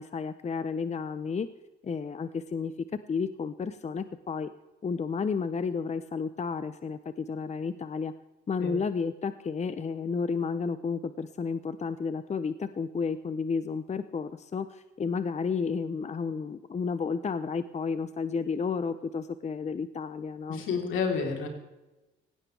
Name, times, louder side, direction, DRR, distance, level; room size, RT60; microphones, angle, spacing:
voice 1, 0.0-1.5 1.8-2.7 3.1-4.5 4.8-8.1 8.5-20.6, left 5 dB, 35° left, 12 dB, 0.8 m, -32 dB
voice 2, 20.5-21.5, left 5 dB, 80° left, 2 dB, 3.9 m, -29 dB
18.5 x 16.5 x 3.5 m, 1.0 s
cardioid pair, 90°, 20 cm